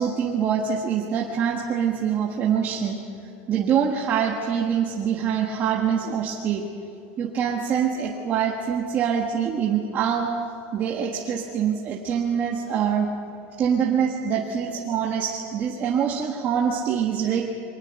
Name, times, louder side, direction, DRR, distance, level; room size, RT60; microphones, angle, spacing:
voice 1, 0.0-3.0 3.5-6.7 7.2-10.3 10.7-13.1 13.6-17.4, right 7 dB, 30° right, -1 dB, 1.5 m, -24 dB
23.0 x 19.5 x 8.1 m, 2.5 s
supercardioid pair, 170°, 7 cm